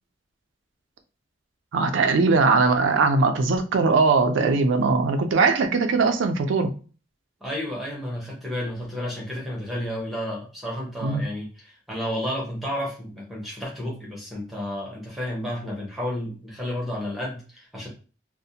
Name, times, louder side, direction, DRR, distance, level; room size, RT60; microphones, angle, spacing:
voice 1, 1.7-6.7 11.0-11.2, right 4 dB, 80° right, 0.4 m, -20 dB
voice 2, 7.4-17.9, left 1 dB, ahead, 0.7 m, -31 dB
2.4 x 2.1 x 2.7 m
head